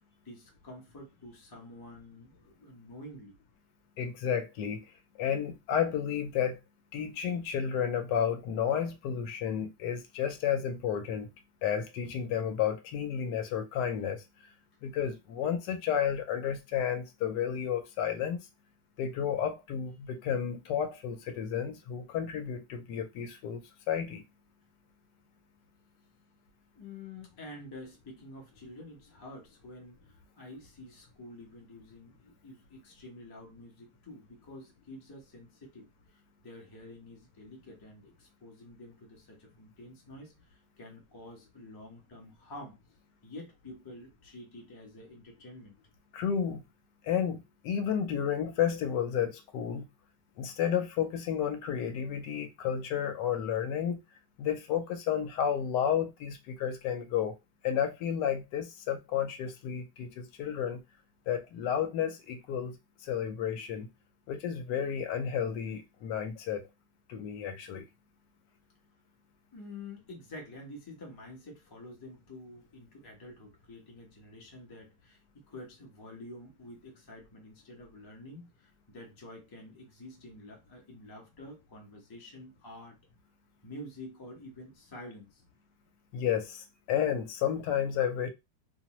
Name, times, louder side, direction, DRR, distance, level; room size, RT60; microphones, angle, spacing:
voice 1, 0.2-3.3 26.7-42.8 43.2-45.8 69.5-83.0 83.6-85.4, left 1 dB, 30° left, 0.4 m, -48 dB
voice 2, 4.0-4.9 5.2-6.6 6.9-11.3 11.6-14.2 14.8-18.4 19.0-23.6 23.9-24.2 46.1-46.6 47.0-49.9 50.4-54.0 54.4-57.3 57.6-60.8 61.3-62.8 63.0-63.9 64.3-66.7 67.1-67.8 86.1-88.3, left 8 dB, 80° left, 1.2 m, -31 dB
2.8 x 2.0 x 2.8 m
omnidirectional pair, 1.8 m